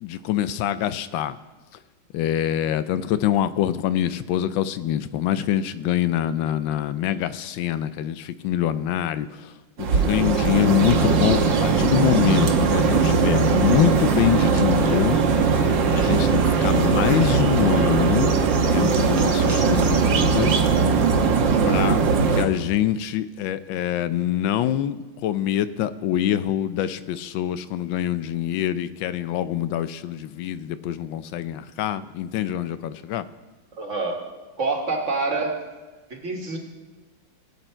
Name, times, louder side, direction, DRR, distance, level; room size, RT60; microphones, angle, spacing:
voice 1, 0.0-1.4 2.1-9.5 9.9-15.2 15.6-18.3 18.6-20.5 21.6-22.0 22.3-33.2, left 11 dB, 85° left, 13 dB, 1.4 m, -25 dB
sound 1, 9.8-22.4, right 5 dB, 75° right, 1.7 m, -20 dB
voice 2, 33.8-34.2 34.6-35.7 36.1-36.6, right 3 dB, 40° right, 2 dB, 1.8 m, -26 dB
20.5 x 8.4 x 4.5 m, 1.2 s
omnidirectional pair, 2.1 m